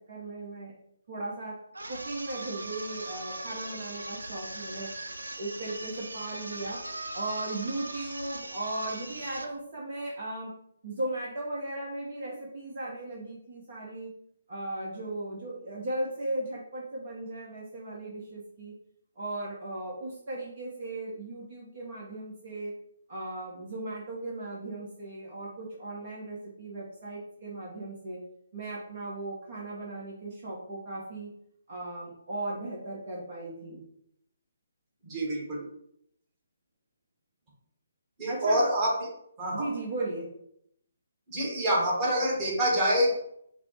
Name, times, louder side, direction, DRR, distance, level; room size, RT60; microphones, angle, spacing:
voice 1, 0.1-0.7 1.1-1.6 1.9-4.9 5.4-6.8 7.1-10.5 10.8-14.1 14.5-18.7 19.1-22.7 23.1-28.2 28.5-31.3 31.7-33.8 38.3-38.6 39.5-40.3, right 2 dB, 45° right, -4 dB, 1.3 m, -37 dB
sound 1, 1.7-9.6, right 2 dB, 80° right, 0.6 m, -40 dB
voice 2, 35.0-35.7 38.2-39.1 39.4-39.7 41.3-43.2, equal, 25° right, -4 dB, 1.6 m, -26 dB
4.9 x 2.4 x 4.4 m, 0.73 s
figure-of-eight pair, 140°, 0 cm